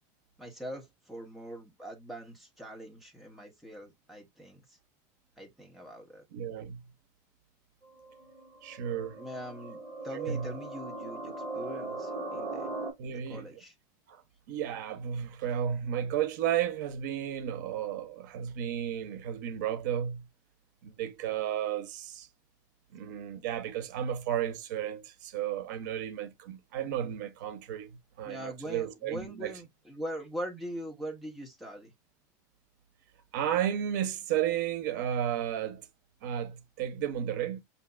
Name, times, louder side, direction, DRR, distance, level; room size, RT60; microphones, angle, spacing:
voice 1, 0.4-4.8 5.4-6.2 9.2-12.7 13.0-13.7 28.2-31.9, equal, ahead, 1.0 m, -42 dB
voice 2, 6.3-6.8 8.6-9.2 10.1-10.5 13.0-13.6 14.1-14.2 14.5-20.2 20.8-22.3 22.9-29.5 33.3-35.9 36.2-37.6, right 10 dB, 85° right, 0.7 m, -33 dB
sound 1, 7.8-12.9, right 2 dB, 25° right, 1.9 m, -39 dB
6.5 x 2.7 x 2.3 m
cardioid pair, 170°, 10 cm